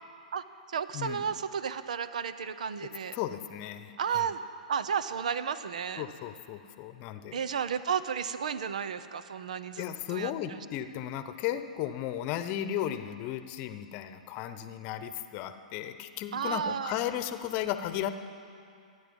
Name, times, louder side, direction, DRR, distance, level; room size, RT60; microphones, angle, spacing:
voice 1, 0.3-3.2 4.0-4.4 4.7-6.1 7.3-9.8 10.1-10.6 16.3-17.0, right 7 dB, 70° right, 13 dB, 0.8 m, -33 dB
voice 2, 0.9-1.3 2.8-4.3 6.0-7.4 9.8-18.1, left 11 dB, 40° left, 10 dB, 0.9 m, -35 dB
26.5 x 10.0 x 5.4 m, 2.4 s
figure-of-eight pair, 110°, 4 cm